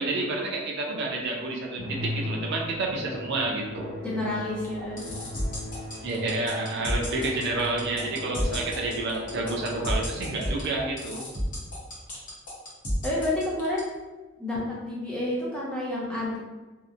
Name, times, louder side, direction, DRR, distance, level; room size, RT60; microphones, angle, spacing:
voice 1, 0.0-3.9 6.0-11.2, right 2 dB, 55° right, -1 dB, 0.4 m, -29 dB
Musical instrument, 1.8-10.3, left 1 dB, 80° left, 0.6 m, -38 dB
voice 2, 4.0-5.0 13.0-13.8 14.4-16.4, left 1 dB, 5° left, -6 dB, 0.4 m, -29 dB
sound 1, 4.6-13.8, equal, 40° left, 0.7 m, -32 dB
2.7 x 2.0 x 2.4 m, 1.2 s
head